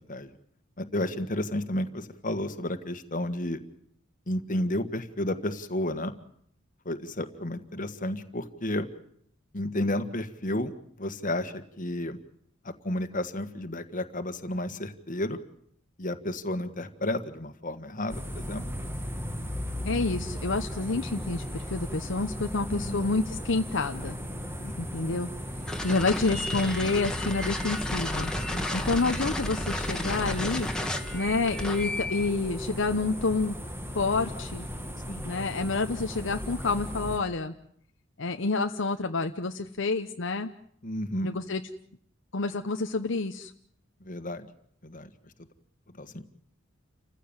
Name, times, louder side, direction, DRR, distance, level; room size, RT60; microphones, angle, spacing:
voice 1, 0.8-3.6 4.3-6.1 6.8-8.9 9.5-10.7 11.0-12.2 12.6-15.4 16.0-18.6 22.7-23.0 24.6-24.7 28.5-28.8 35.1-35.3 40.8-41.3 44.0-44.5 44.8-45.1 46.0-46.2, left 1 dB, 40° left, 9 dB, 1.7 m, -32 dB
sound 1, 18.1-37.2, equal, 10° right, 2.1 m, -37 dB
voice 2, 19.8-24.2 24.8-25.3 25.8-28.3 28.7-30.7 31.1-33.6 33.9-34.7 35.2-37.5 38.2-40.5 41.2-41.6 42.3-43.5, left 3 dB, 65° left, 6 dB, 0.9 m, -28 dB
sound 2, 25.7-32.3, left 1 dB, 5° left, 2.0 m, -33 dB
29.0 x 15.5 x 9.0 m, 0.67 s
head